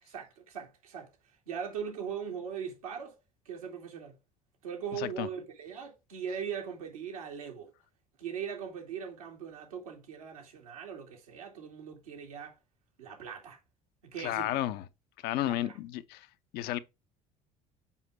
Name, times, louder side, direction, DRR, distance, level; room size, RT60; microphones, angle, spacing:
voice 1, 0.0-1.1 1.5-3.2 3.4-4.2 4.6-7.7 8.2-12.6 13.0-13.6 14.0-14.5 15.4-15.7, right 7 dB, 85° right, 2.6 m, -40 dB
voice 2, 5.0-5.3 14.2-14.8 15.2-16.3 16.5-16.8, left 14 dB, 60° left, 0.8 m, -32 dB
7.2 x 5.8 x 3.4 m
hypercardioid pair, 65°, 18 cm